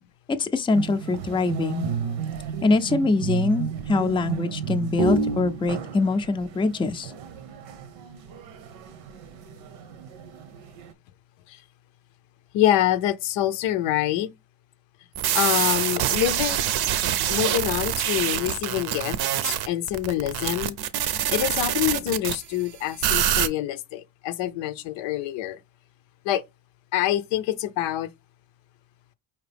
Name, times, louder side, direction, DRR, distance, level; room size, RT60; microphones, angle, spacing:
voice 1, 0.4-1.9 2.6-7.1, left 3 dB, 10° left, 0.4 m, -23 dB
sound 1, 0.7-10.9, right 5 dB, 85° right, 0.8 m, -32 dB
voice 2, 12.5-14.3 15.3-16.7 17.3-19.2 19.4-20.8 21.3-25.6 26.2-26.4 26.9-28.1, left 13 dB, 90° left, 0.6 m, -26 dB
sound 2, 15.2-22.4 23.0-23.5, right 11 dB, 60° right, 0.6 m, -25 dB
5.0 x 2.9 x 3.3 m
cardioid pair, 100°, 44 cm